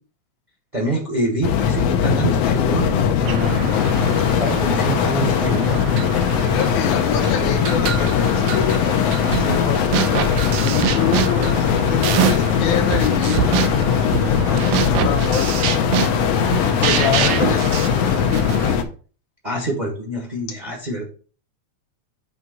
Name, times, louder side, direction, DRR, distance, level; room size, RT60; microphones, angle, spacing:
voice 1, 0.7-3.7 4.4-5.9 16.9-17.6 18.6-18.7 19.4-21.0, right 1 dB, 25° right, 0 dB, 0.9 m, -26 dB
sound 1, 1.4-18.8, left 7 dB, 70° left, 1.7 m, -20 dB
sound 2, 3.2-18.8, right 5 dB, 65° right, 1.1 m, -33 dB
voice 2, 6.4-10.0 10.6-13.4 14.4-15.5 16.8-17.6 18.1-18.6, left 7 dB, 90° left, 2 dB, 2.4 m, -26 dB
sound 3, 9.3-9.6 9.9-12.6 12.9-18.6, right 10 dB, 90° right, 2.1 m, -24 dB
7.7 x 3.6 x 5.4 m, 0.39 s
omnidirectional pair, 3.3 m